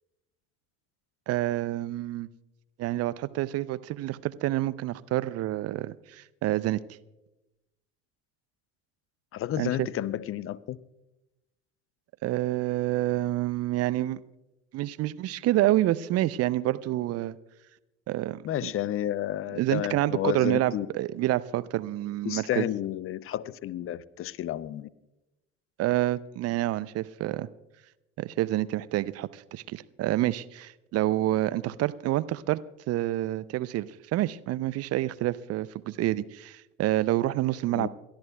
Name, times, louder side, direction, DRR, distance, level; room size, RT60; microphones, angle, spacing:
voice 1, 1.3-2.3 2.8-6.8 9.6-9.9 12.2-14.2 14.7-17.4 18.1-18.7 19.5-22.7 25.8-27.5 28.2-32.6 32.9-37.9, right 15 dB, 40° right, 16 dB, 0.6 m, -28 dB
voice 2, 9.3-10.8 18.4-20.9 22.2-24.9 37.7-37.9, left 12 dB, 35° left, 20 dB, 0.6 m, -31 dB
29.0 x 13.0 x 2.3 m, 0.97 s
figure-of-eight pair, 65°, 38 cm